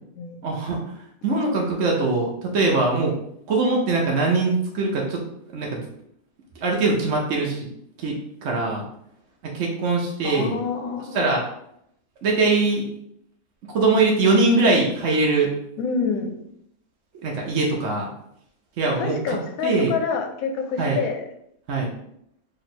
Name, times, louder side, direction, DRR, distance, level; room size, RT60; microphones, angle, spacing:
voice 1, 0.4-0.9 1.2-3.1 3.5-5.2 5.5-5.8 6.6-7.7 8.0-8.8 9.4-10.6 11.1-11.4 12.2-12.8 13.7-15.5 17.2-18.1 18.8-19.4 19.6-19.9 20.8-21.0 21.7-21.9, right 3 dB, 60° right, -2 dB, 0.9 m, -22 dB
voice 2, 10.2-11.3 15.8-16.4 19.0-21.2, left 5 dB, 70° left, 4 dB, 1.0 m, -27 dB
3.2 x 2.7 x 4.2 m, 0.74 s
omnidirectional pair, 1.7 m